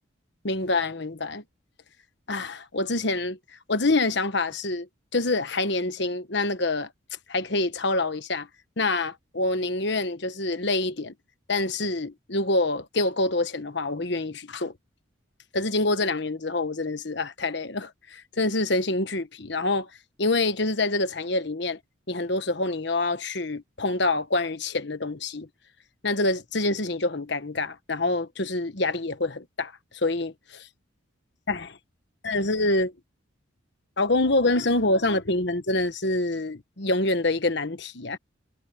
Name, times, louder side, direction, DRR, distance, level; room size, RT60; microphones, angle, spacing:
voice 1, 0.4-1.4 2.3-3.4 3.7-6.9 7.3-8.5 8.8-11.1 11.5-14.7 15.5-19.9 20.2-21.8 22.1-25.5 26.0-30.7 31.5-31.8 32.2-32.9 34.0-38.2, left 2 dB, 55° left, 1.3 m, -26 dB
head